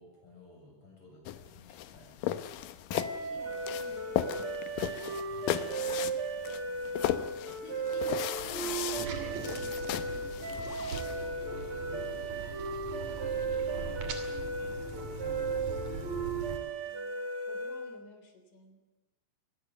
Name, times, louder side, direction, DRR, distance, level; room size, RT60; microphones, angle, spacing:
voice 1, 0.0-2.3 5.3-6.2 12.4-12.5 13.1-14.9, left 2 dB, 40° left, 0 dB, 8.3 m, -55 dB
sound 1, 1.3-11.3, left 12 dB, 80° left, 2.5 m, -36 dB
sound 2, 2.9-18.0, right 3 dB, 45° right, 3.0 m, -36 dB
voice 2, 3.0-4.7 6.8-11.4 11.9-12.6 15.4-16.2 16.8-18.8, left 1 dB, 60° left, 6 dB, 4.7 m, -55 dB
sound 3, 8.4-16.6, right 3 dB, 60° right, 3.8 m, -41 dB
26.5 x 20.5 x 6.9 m, 1.1 s
omnidirectional pair, 3.8 m